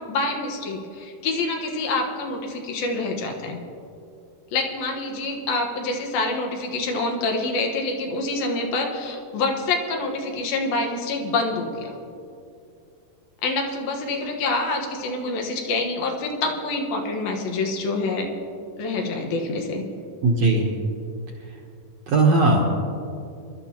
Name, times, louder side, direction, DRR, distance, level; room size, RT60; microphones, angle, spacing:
voice 1, 0.1-3.6 4.5-11.9 13.4-18.3 18.8-19.8, left 3 dB, 90° left, 2 dB, 3.2 m, -26 dB
voice 2, 20.2-20.7 22.1-22.6, right 2 dB, 65° right, 0 dB, 1.7 m, -18 dB
23.5 x 12.0 x 2.9 m, 2.5 s
omnidirectional pair, 4.1 m